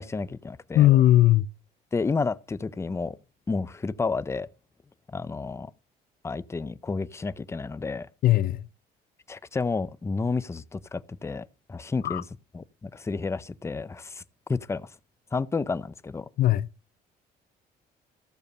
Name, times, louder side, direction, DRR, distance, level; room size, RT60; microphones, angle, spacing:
voice 1, 0.0-0.9 1.9-3.1 3.5-4.5 5.1-5.7 6.2-8.1 9.3-12.2 12.5-14.2 14.5-14.9 15.3-16.3, left 4 dB, 15° left, 0.6 m, -31 dB
voice 2, 0.7-1.5 8.2-8.7 12.0-12.2 16.4-16.7, left 14 dB, 60° left, 0.5 m, -19 dB
14.5 x 6.7 x 6.6 m
cardioid pair, 110°, 17 cm